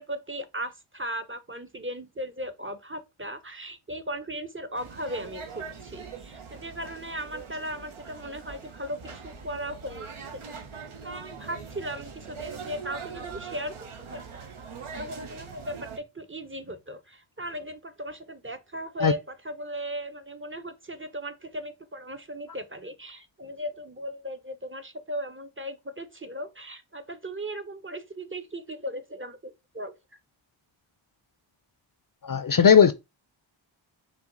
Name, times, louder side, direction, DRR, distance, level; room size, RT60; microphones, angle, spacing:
voice 1, 0.0-10.6 11.0-14.5 14.9-30.0, equal, 25° right, 0.6 m, -37 dB
sound 1, 4.7-16.0, right 5 dB, 85° right, 1.0 m, -42 dB
voice 2, 32.2-32.9, left 7 dB, 45° left, 0.5 m, -17 dB
5.7 x 2.2 x 3.8 m
wide cardioid pair, 60°, 49 cm